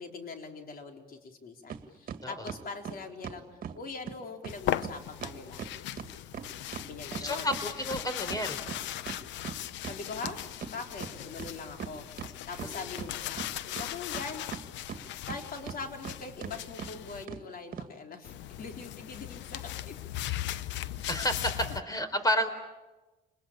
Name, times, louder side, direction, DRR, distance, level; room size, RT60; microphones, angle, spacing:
voice 1, 0.0-5.6 6.7-7.5 9.9-10.4 10.7-13.4 13.7-14.4 15.3-20.0, left 4 dB, 50° left, 4 dB, 4.0 m, -42 dB
sound 1, 1.7-1.8 2.1-3.8 4.1-4.2 4.4-4.6 4.8-4.9 5.2-7.6 7.9-10.7 11.0-11.1 11.4-12.3 12.6-13.5 13.8-15.4 15.7-16.1 16.4-16.5 16.8-16.9 17.3-17.4 17.7-17.9, right 7 dB, 50° right, 2.0 m, -39 dB
sound 2, 4.5-17.3 18.2-21.8, left 13 dB, 80° left, 0.8 m, -38 dB
voice 2, 7.2-8.6 12.6-12.9 21.1-22.5, equal, 20° left, 11 dB, 4.1 m, -31 dB
30.0 x 20.5 x 8.7 m, 1.1 s
cardioid pair, 90°, 19 cm